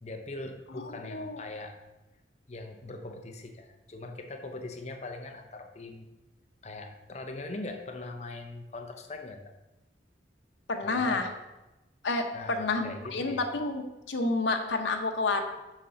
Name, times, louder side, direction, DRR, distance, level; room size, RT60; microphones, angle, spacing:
voice 1, 0.0-1.8 2.5-6.1 6.6-9.4 10.8-11.3 12.3-13.5, left 2 dB, 35° left, 5 dB, 0.7 m, -41 dB
voice 2, 1.0-1.4 10.7-11.3 12.0-15.4, left 3 dB, 85° left, 4 dB, 0.8 m, -29 dB
7.3 x 5.8 x 3.8 m, 1.0 s
head